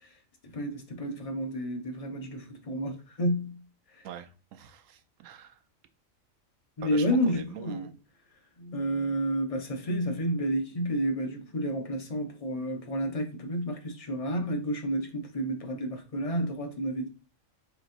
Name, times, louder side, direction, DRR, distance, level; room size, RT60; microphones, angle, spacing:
voice 1, 0.4-3.6 6.8-7.9 8.6-17.1, equal, 35° left, 0.6 m, -30 dB
voice 2, 4.0-5.6 6.8-7.9, right 10 dB, 75° right, 0.9 m, -44 dB
4.0 x 3.9 x 2.5 m
omnidirectional pair, 1.4 m